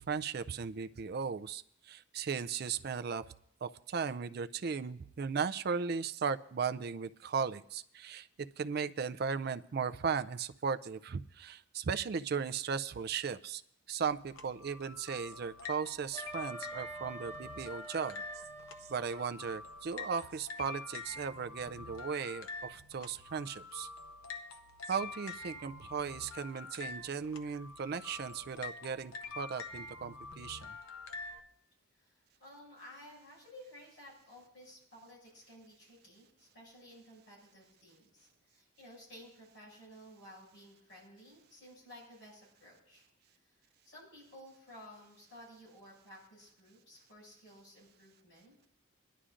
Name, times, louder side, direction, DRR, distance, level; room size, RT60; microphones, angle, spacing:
voice 1, 0.0-1.6 1.9-3.2 3.6-8.3 8.6-13.6 13.9-18.2 18.9-23.9 24.9-30.7, right 6 dB, 50° right, 12 dB, 0.4 m, -37 dB
sound 1, 14.1-31.4, left 4 dB, 85° left, 0.8 m, -46 dB
Wind instrument woodwind instrument, 16.1-19.3, right 2 dB, 20° left, 2.0 m, -47 dB
voice 2, 32.4-43.0 43.8-48.7, equal, 55° left, -4 dB, 6.5 m, -55 dB
22.5 x 11.0 x 2.5 m, 0.69 s
head